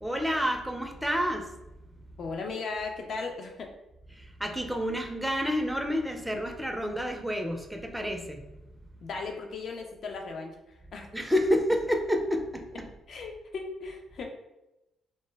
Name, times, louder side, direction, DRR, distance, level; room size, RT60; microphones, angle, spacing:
voice 1, 0.0-1.5 4.1-8.4 11.1-12.7, equal, 5° right, 3 dB, 0.4 m, -29 dB
voice 2, 2.2-3.7 9.0-10.6 10.9-11.1 13.1-14.3, left 4 dB, 60° left, 2 dB, 0.5 m, -36 dB
2.1 x 2.0 x 3.3 m, 0.94 s
cardioid pair, 90°, 0 cm